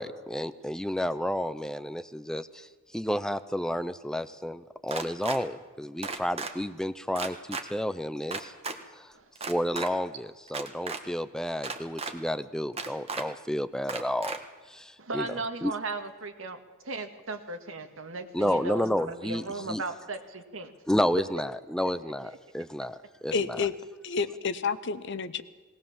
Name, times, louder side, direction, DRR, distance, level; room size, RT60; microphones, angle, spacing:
voice 1, 0.0-2.7 2.9-8.5 9.0-9.1 9.5-14.4 14.7-15.3 15.6-15.7 18.3-19.4 19.7-19.8 20.9-23.6, equal, 5° left, 13 dB, 0.5 m, -31 dB
sound 1, 4.9-5.4 6.0-6.5 7.1-7.6 8.3-8.8 9.4-9.9 10.5-11.0 11.6-12.1 12.8-13.2 13.9-14.4, right 4 dB, 30° right, 1.4 m, -34 dB
voice 2, 15.0-16.6 16.8-20.7 21.8-22.4, right 3 dB, 80° right, 7 dB, 1.8 m, -37 dB
voice 3, 23.3-23.7 24.0-25.4, left 5 dB, 60° left, 14 dB, 0.9 m, -29 dB
19.5 x 18.0 x 7.4 m, 1.3 s
head